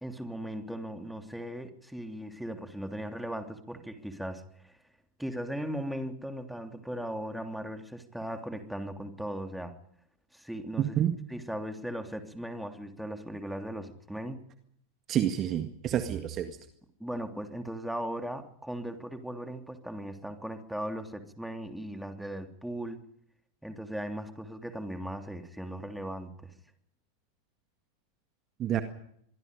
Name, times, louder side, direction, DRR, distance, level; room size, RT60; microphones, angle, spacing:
voice 1, 0.0-4.8 5.2-9.7 10.3-11.0 11.3-14.4 17.0-23.0 23.6-26.5, equal, ahead, 6 dB, 3.1 m, -38 dB
voice 2, 10.8-11.2 15.1-16.6 28.6-28.8, right 10 dB, 30° right, 8 dB, 1.9 m, -28 dB
25.5 x 23.0 x 5.2 m, 0.69 s
figure-of-eight pair, 90°, 0 cm